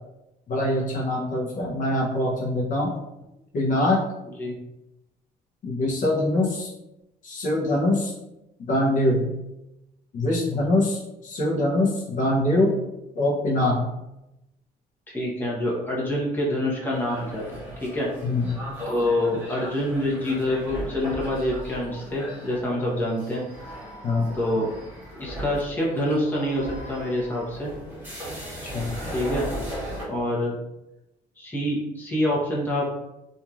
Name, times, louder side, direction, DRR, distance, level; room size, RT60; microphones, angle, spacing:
voice 1, 0.5-2.9 3.5-4.0 5.6-6.7 7.2-8.1 8.6-9.3 10.1-12.8 13.2-13.8 18.2-18.6 24.0-24.3 28.7-28.9, left 1 dB, 50° left, -3 dB, 0.7 m, -23 dB
voice 2, 15.1-18.1 18.9-23.4 24.3-24.7 25.2-27.7 29.1-29.5 30.1-30.6 31.4-32.9, left 1 dB, 10° left, -5 dB, 0.9 m, -26 dB
sound 1, 16.9-30.0, equal, 10° right, 1.4 m, -37 dB
2.9 x 2.6 x 2.4 m, 0.91 s
cardioid pair, 110°, 17 cm